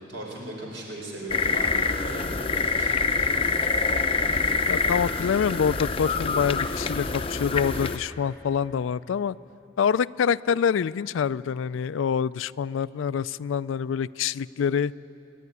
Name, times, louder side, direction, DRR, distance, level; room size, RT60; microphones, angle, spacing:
voice 1, 0.0-2.9, right 1 dB, 75° right, -1 dB, 4.7 m, -38 dB
sound 1, 1.3-8.0, left 4 dB, 30° left, 0.6 m, -26 dB
voice 2, 4.7-9.4 9.8-14.9, left 7 dB, 85° left, 18 dB, 0.4 m, -26 dB
26.5 x 11.0 x 9.6 m, 2.9 s
head